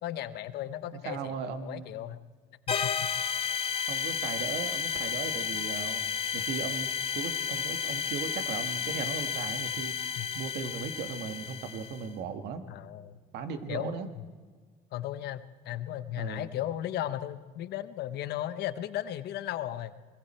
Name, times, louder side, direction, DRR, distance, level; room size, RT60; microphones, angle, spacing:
voice 1, 0.0-2.2 2.7-3.1 10.2-10.3 12.7-13.2 13.7-14.2 14.9-20.0, left 12 dB, 75° left, 13 dB, 1.0 m, -36 dB
voice 2, 1.0-1.9 3.9-6.0 6.3-12.6 13.3-14.1 16.2-16.5, right 6 dB, 80° right, 8 dB, 1.7 m, -37 dB
sound 1, 2.7-12.1, left 7 dB, 35° left, 1.5 m, -32 dB
27.5 x 21.5 x 4.4 m, 1.5 s
cardioid pair, 110°, 17 cm